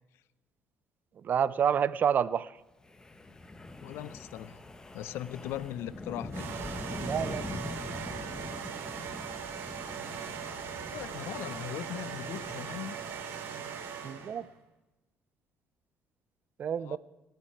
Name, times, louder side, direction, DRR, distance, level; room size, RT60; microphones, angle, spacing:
voice 1, 1.2-2.5 7.0-7.4 7.8-8.1 14.0-14.5 16.6-17.0, right 8 dB, 45° right, 18 dB, 0.6 m, -29 dB
Wind, 2.8-13.1, left 2 dB, 15° left, 1.1 m, -43 dB
voice 2, 3.8-4.6 4.9-6.5 10.8-13.0 16.8-17.0, left 12 dB, 75° left, 18 dB, 0.7 m, -39 dB
sound 1, 6.3-14.4, right 7 dB, 65° right, 2.8 m, -39 dB
27.5 x 9.1 x 4.5 m, 1.0 s
cardioid pair, 100°, 4 cm